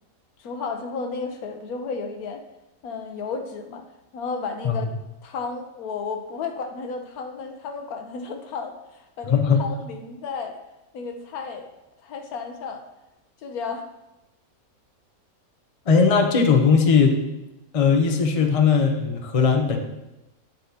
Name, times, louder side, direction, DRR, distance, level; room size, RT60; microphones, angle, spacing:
voice 1, 0.4-2.4 2.8-3.8 4.1-4.9 5.2-10.5 10.9-11.7 12.0-12.8 13.4-13.9, left 4 dB, 80° left, 5 dB, 1.3 m, -33 dB
voice 2, 9.2-9.6 15.9-17.1 17.7-19.8, left 5 dB, 30° left, 3 dB, 0.6 m, -18 dB
9.3 x 7.7 x 2.8 m, 0.96 s
omnidirectional pair, 1.5 m